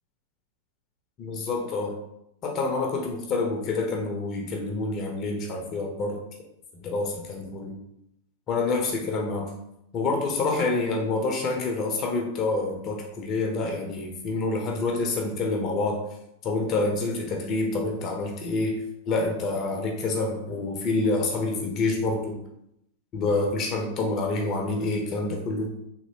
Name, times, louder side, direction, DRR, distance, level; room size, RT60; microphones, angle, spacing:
voice 1, 1.2-2.0 2.4-6.2 6.8-7.7 8.5-9.5 9.9-16.0 16.4-18.8 19.1-22.4 23.1-25.7, left 3 dB, 35° left, 1 dB, 0.6 m, -27 dB
3.1 x 2.7 x 2.8 m, 0.80 s
figure-of-eight pair, 90°, 0 cm